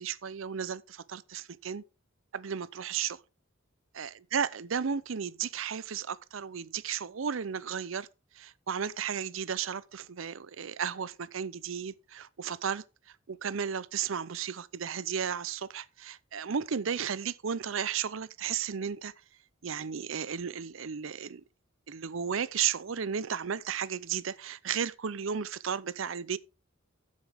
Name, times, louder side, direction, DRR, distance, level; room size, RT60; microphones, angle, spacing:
voice 1, 0.0-1.8 2.3-3.2 3.9-8.1 8.3-12.8 13.3-19.1 19.6-21.4 21.9-26.4, right 7 dB, 70° right, 0.6 m, -34 dB
13.0 x 7.4 x 3.5 m
head